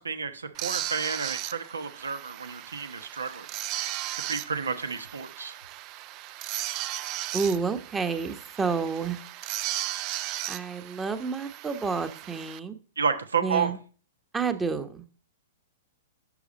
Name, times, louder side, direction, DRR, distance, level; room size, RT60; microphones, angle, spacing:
voice 1, 0.0-3.5 4.3-5.6 13.0-13.7, right 5 dB, 80° right, 10 dB, 1.1 m, -31 dB
sound 1, 0.5-12.6, right 14 dB, 40° right, 0.5 m, -36 dB
voice 2, 7.3-9.2 10.5-12.8 13.4-13.8 14.3-15.0, right 5 dB, 15° right, 9 dB, 1.1 m, -29 dB
11.0 x 7.1 x 4.1 m, 0.39 s
figure-of-eight pair, 110°, 0 cm